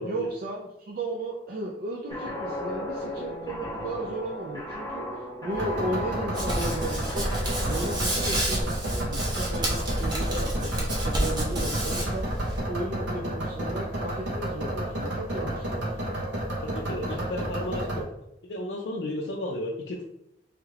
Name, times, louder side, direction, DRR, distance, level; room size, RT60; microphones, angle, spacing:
voice 1, 0.0-7.3 7.6-16.1, right 1 dB, 50° right, -1 dB, 0.4 m, -35 dB
Guitar, 2.1-8.6, left 1 dB, 20° left, 0.7 m, -35 dB
sound 1, 5.5-18.0, right 1 dB, 80° right, 0.9 m, -31 dB
Hands, 6.3-12.6, right 1 dB, 25° right, 0.7 m, -29 dB
voice 2, 16.6-18.1 18.4-20.0, left 1 dB, 65° left, -2 dB, 0.4 m, -33 dB
3.2 x 2.4 x 3.2 m, 0.82 s
head